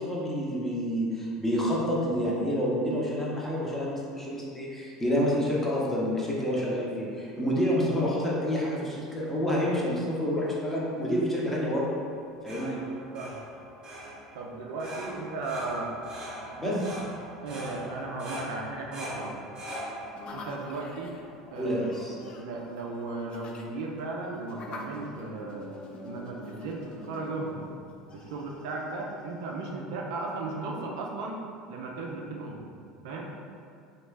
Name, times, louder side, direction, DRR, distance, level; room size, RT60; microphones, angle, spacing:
voice 1, 0.0-12.0 12.4-12.8 16.6-16.7 21.6-22.1, equal, 10° left, -5 dB, 0.7 m, -28 dB
sound 1, 12.1-21.8, equal, 30° right, 0.9 m, -42 dB
voice 2, 14.3-15.9 16.6-16.8 17.4-19.4 20.3-21.2 21.5-25.7 26.0-27.7 28.1-31.4 31.7-32.7 33.0-33.3, right 3 dB, 65° right, -1 dB, 0.4 m, -36 dB
sound 2, 20.1-29.7, left 2 dB, 35° left, 0.3 m, -46 dB
2.9 x 2.3 x 3.2 m, 2.3 s
figure-of-eight pair, 75°, 3 cm